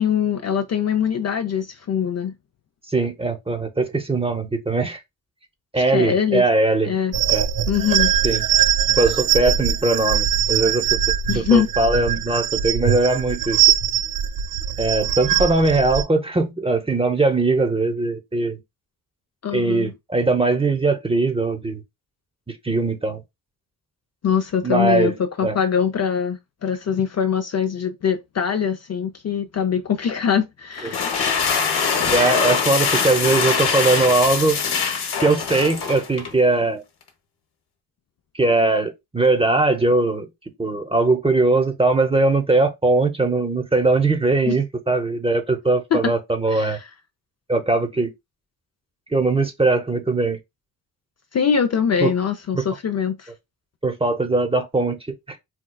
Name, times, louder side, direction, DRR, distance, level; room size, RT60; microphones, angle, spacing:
voice 1, 0.0-2.3 5.8-6.5 6.8-7.1 7.7-8.1 11.3-11.7 19.4-19.9 24.2-31.1 44.5-44.6 45.9-46.1 46.5-46.9 51.3-53.3, left 7 dB, 40° left, 0.5 m, -22 dB
voice 2, 2.9-5.0 5.7-6.9 7.3-7.5 8.2-8.4 8.9-11.0 11.3-13.6 14.8-18.6 19.5-21.8 22.6-23.2 24.6-25.2 25.4-25.6 30.8-31.0 32.1-34.6 35.2-36.8 38.4-40.3 40.6-46.8 47.5-48.1 49.1-50.4 52.0-52.1 52.5-52.6 53.8-55.0 55.3-55.4, right 2 dB, 15° right, 0.8 m, -20 dB
sound 1, 7.1-16.0, right 10 dB, 50° right, 0.5 m, -21 dB
sound 2, 30.8-36.4, left 6 dB, 65° left, 0.9 m, -23 dB
4.3 x 2.2 x 2.2 m
cardioid pair, 70°, 42 cm